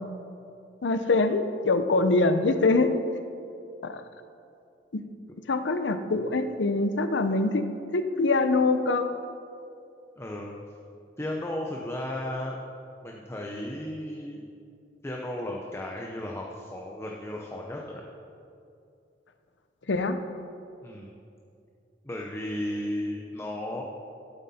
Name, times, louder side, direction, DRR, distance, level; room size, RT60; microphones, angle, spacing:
voice 1, 0.8-2.9 3.8-4.0 4.9-5.0 5.5-7.6 7.9-9.1 19.9-20.2, left 3 dB, 90° left, 9 dB, 0.7 m, -24 dB
voice 2, 10.2-10.5 11.2-12.6 13.0-14.4 15.0-18.0 20.8-21.2 22.0-23.8, left 1 dB, 15° left, -1 dB, 0.7 m, -34 dB
12.0 x 7.8 x 4.3 m, 2.5 s
head